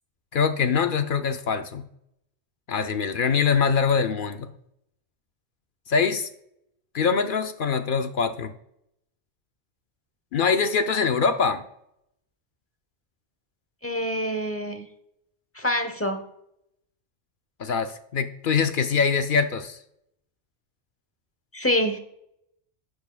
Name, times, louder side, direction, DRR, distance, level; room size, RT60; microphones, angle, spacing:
voice 1, 0.3-1.8 2.7-4.5 5.9-6.3 6.9-8.5 10.3-11.6 17.6-19.8, left 6 dB, 60° left, 9 dB, 0.6 m, -23 dB
voice 2, 13.8-14.9 15.5-16.2 21.5-22.0, equal, 15° left, 6 dB, 0.7 m, -26 dB
10.5 x 7.0 x 2.2 m, 0.77 s
omnidirectional pair, 1.2 m